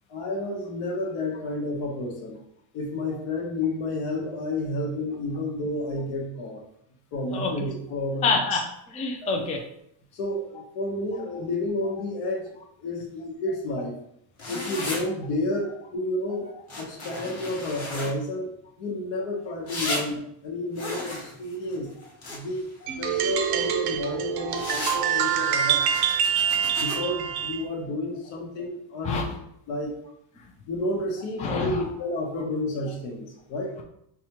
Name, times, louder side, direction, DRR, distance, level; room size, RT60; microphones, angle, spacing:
voice 1, 0.1-2.4 2.7-6.6 7.1-8.6 9.2-9.3 10.1-13.9 14.5-16.5 16.8-18.5 18.8-21.9 22.3-22.7 23.0-25.9 26.8-29.3 29.7-29.9 30.7-33.8, left 2 dB, 75° left, 0 dB, 1.1 m, -31 dB
voice 2, 8.2-8.6 8.9-9.6 29.0-29.2 31.4-31.8, left 4 dB, 15° left, 1 dB, 0.4 m, -26 dB
sound 1, 14.4-15.0 16.7-18.1 19.7-20.0 20.8-22.7 24.5-25.0 25.7-27.0, left 2 dB, 35° left, 1.0 m, -34 dB
sound 2, 22.9-27.6, right 8 dB, 55° right, 0.6 m, -25 dB
4.2 x 2.4 x 2.9 m, 0.74 s
cardioid pair, 115°, 46 cm